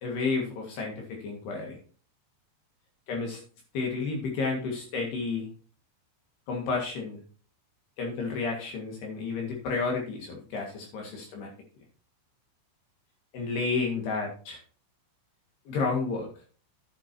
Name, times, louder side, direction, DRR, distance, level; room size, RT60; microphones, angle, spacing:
voice 1, 0.0-1.8 3.1-3.4 3.7-5.5 6.5-7.2 8.0-11.5 13.3-14.6 15.7-16.3, left 4 dB, 65° left, 0 dB, 3.7 m, -31 dB
10.5 x 9.8 x 2.9 m, 0.39 s
omnidirectional pair, 5.5 m